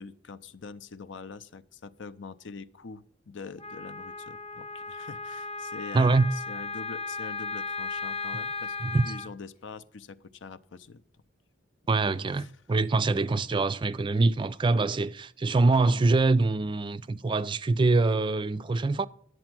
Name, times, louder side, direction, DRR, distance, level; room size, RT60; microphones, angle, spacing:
voice 1, 0.0-8.8 9.0-11.0 12.3-12.5 15.8-16.1, left 5 dB, 70° left, 0.6 m, -44 dB
Wind instrument woodwind instrument, 3.6-9.3, left 4 dB, 30° left, 0.7 m, -36 dB
voice 2, 5.9-6.2 8.8-9.1 11.9-19.1, right 3 dB, 25° right, 0.4 m, -24 dB
10.5 x 7.9 x 6.0 m
head